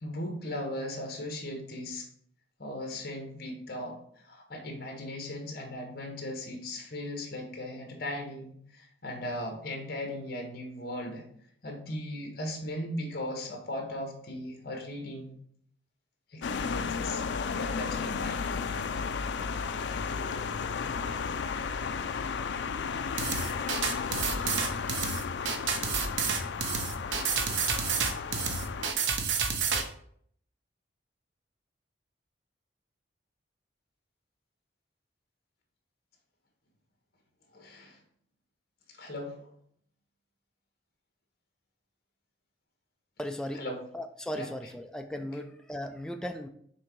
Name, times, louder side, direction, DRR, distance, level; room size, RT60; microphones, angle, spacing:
voice 1, 0.0-2.1 2.6-11.2 11.6-15.4 16.3-17.2 17.5-18.4 37.5-38.0 38.9-39.5 43.5-43.8 44.3-44.7 45.2-45.3, left 1 dB, 55° left, 2 dB, 1.4 m, -38 dB
sound 1, 16.4-28.9, left 5 dB, 70° left, 0.4 m, -33 dB
sound 2, 23.2-29.8, right 6 dB, 85° right, 0.7 m, -29 dB
voice 2, 43.2-43.6 43.9-46.5, left 1 dB, 5° left, 5 dB, 0.4 m, -37 dB
6.2 x 3.8 x 4.6 m, 0.64 s
head